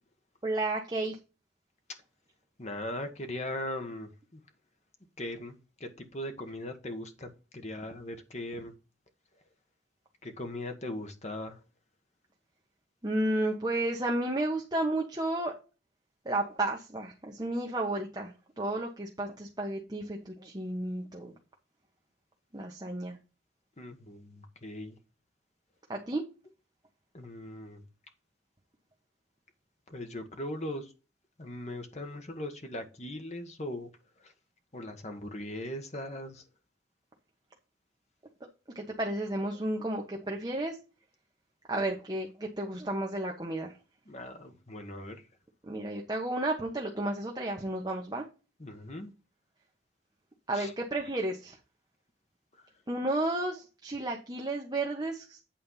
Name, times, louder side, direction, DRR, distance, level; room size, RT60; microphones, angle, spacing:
voice 1, 0.4-1.2 13.0-15.5 16.2-21.3 22.5-23.2 25.9-26.2 38.7-40.8 41.7-43.7 45.6-48.2 50.5-51.6 52.9-55.4, right 1 dB, 20° right, 1.2 m, -32 dB
voice 2, 2.6-4.4 5.2-8.7 10.2-11.6 23.8-25.0 27.1-27.8 29.9-30.9 31.4-33.9 34.2-34.3 34.7-36.4 44.1-45.2 48.6-49.1 50.5-50.7, left 1 dB, 40° left, 1.4 m, -39 dB
8.8 x 4.3 x 5.6 m
head